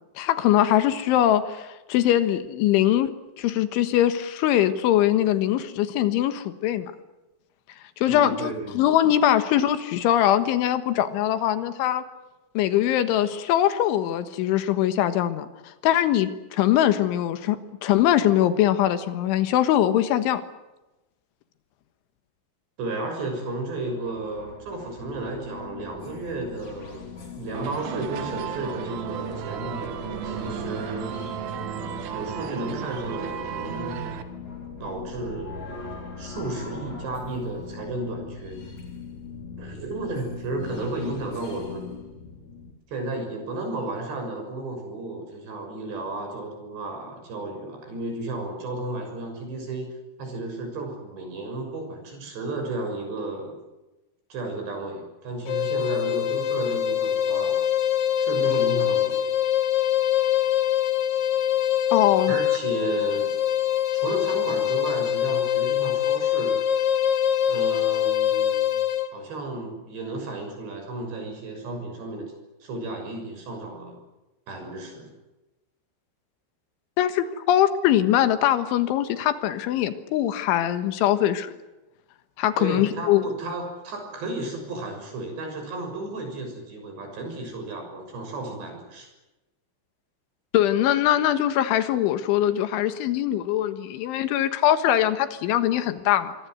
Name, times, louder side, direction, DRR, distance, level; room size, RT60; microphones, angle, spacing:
voice 1, 0.2-6.9 8.0-12.0 12.6-17.6 17.8-20.4 61.9-62.4 77.0-81.5 82.4-83.2 90.5-96.3, left 12 dB, 90° left, 10 dB, 3.9 m, -22 dB
voice 2, 8.1-8.8 22.8-31.2 32.1-34.1 34.8-35.7 36.2-38.6 39.6-42.0 42.9-49.9 50.2-53.6 54.3-57.6 58.2-59.3 62.3-63.3 63.9-66.5 67.5-68.8 69.1-72.3 72.6-74.0 74.5-75.1 82.6-89.1, right 2 dB, 65° right, 4 dB, 8.6 m, -33 dB
sound 1, 23.9-42.7, left 4 dB, 40° left, 4.6 m, -40 dB
sound 2, 27.5-34.2, right 10 dB, 85° right, 4.1 m, -34 dB
sound 3, 55.5-69.1, left 10 dB, 70° left, 1.8 m, -24 dB
25.5 x 24.0 x 7.9 m, 1.0 s
omnidirectional pair, 5.4 m